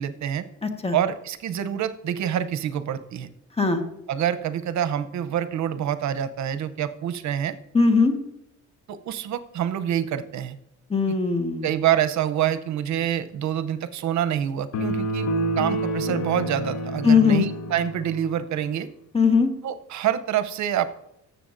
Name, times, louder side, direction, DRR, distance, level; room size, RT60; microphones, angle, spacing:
voice 1, 0.0-0.5 0.9-3.3 4.1-7.6 8.9-10.5 11.6-15.3 15.6-18.9 19.6-20.9, right 10 dB, 70° right, 12 dB, 0.7 m, -26 dB
voice 2, 0.6-1.0 3.6-3.8 7.7-8.1 10.9-11.7 17.0-17.4 19.1-19.5, left 5 dB, 20° left, 6 dB, 1.3 m, -19 dB
sound 1, 14.7-18.3, right 1 dB, 60° left, 1.0 m, -28 dB
14.5 x 6.9 x 2.5 m, 0.80 s
cardioid pair, 90°, 30 cm